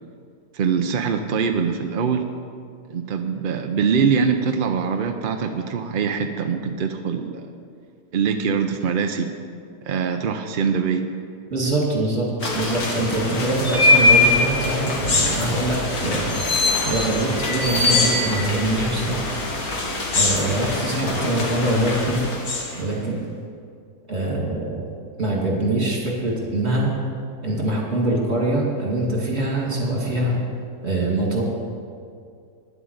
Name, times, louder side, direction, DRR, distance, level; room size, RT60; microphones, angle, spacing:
voice 1, 0.5-2.3 2.9-7.5 8.1-9.3 9.9-11.1, right 6 dB, 60° right, 6 dB, 0.5 m, -23 dB
voice 2, 11.5-12.3 12.5-19.3 20.1-22.2 22.7-23.2 24.1-24.9 25.2-26.9 27.4-30.4 30.8-31.4, right 1 dB, 40° right, -2 dB, 2.7 m, -23 dB
sound 1, 12.4-22.9, left 2 dB, 65° left, 2.1 m, -22 dB
10.5 x 7.9 x 8.0 m, 2.3 s
omnidirectional pair, 1.7 m